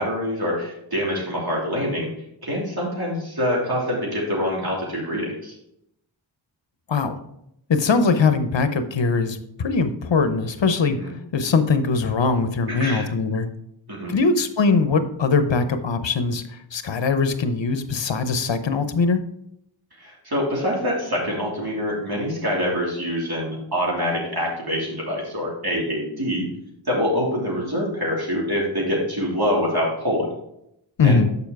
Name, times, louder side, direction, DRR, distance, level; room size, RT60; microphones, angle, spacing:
voice 1, 0.0-2.1 2.4-5.5 11.0-11.1 12.8-13.0 13.9-14.1 20.0-26.4 26.8-30.3 31.0-31.2, equal, 50° right, -4 dB, 3.1 m, -25 dB
voice 2, 7.7-11.0 11.3-13.5 14.1-16.4 16.7-19.2 31.0-31.3, left 4 dB, 70° left, 10 dB, 0.8 m, -21 dB
7.0 x 5.4 x 4.7 m, 0.78 s
wide cardioid pair, 60°, 46 cm